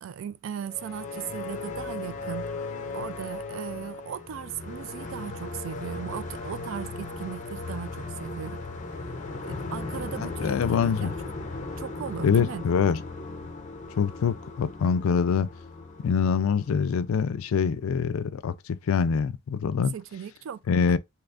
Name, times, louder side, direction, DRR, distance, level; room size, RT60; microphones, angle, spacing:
voice 1, 0.0-2.5 2.9-8.6 9.4-11.2 11.8-12.6 19.9-20.6, right 8 dB, 65° right, 0.3 m, -37 dB
sound 1, 0.6-17.5, left 3 dB, 35° left, 0.5 m, -37 dB
voice 2, 10.2-11.1 12.2-13.0 14.0-15.5 16.0-19.9 20.7-21.0, left 6 dB, 85° left, 0.4 m, -25 dB
2.9 x 2.5 x 3.4 m
head